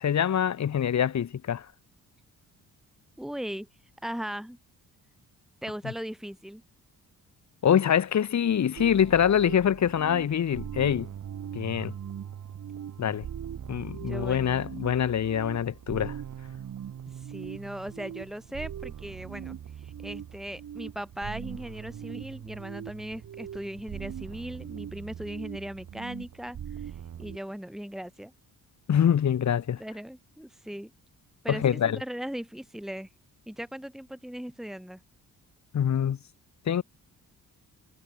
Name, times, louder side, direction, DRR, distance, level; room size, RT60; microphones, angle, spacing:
voice 1, 0.0-1.7 7.6-11.1 11.5-11.9 13.0-13.3 13.7-16.2 28.9-29.8 31.5-32.0 35.7-36.2 36.7-36.8, left 9 dB, 55° left, 3.9 m, -25 dB
voice 2, 3.2-3.7 4.0-4.6 5.6-6.6 14.1-14.6 17.1-28.3 29.8-30.9 31.4-33.1 33.5-35.0, equal, ahead, 3.2 m, -38 dB
sound 1, 8.8-27.4, right 9 dB, 60° right, 8.0 m, -40 dB
cardioid pair, 135°, 34 cm